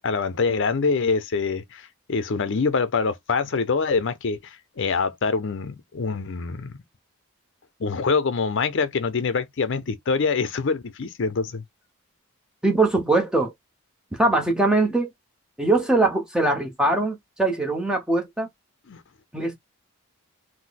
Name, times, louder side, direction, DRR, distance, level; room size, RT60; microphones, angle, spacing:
voice 1, 0.0-6.8 7.8-11.6 18.9-19.0, left 4 dB, 55° left, 0.5 m, -25 dB
voice 2, 12.6-13.5 14.2-15.1 15.6-18.5 19.3-19.5, right 2 dB, 5° right, 0.8 m, -21 dB
2.6 x 2.1 x 3.9 m
head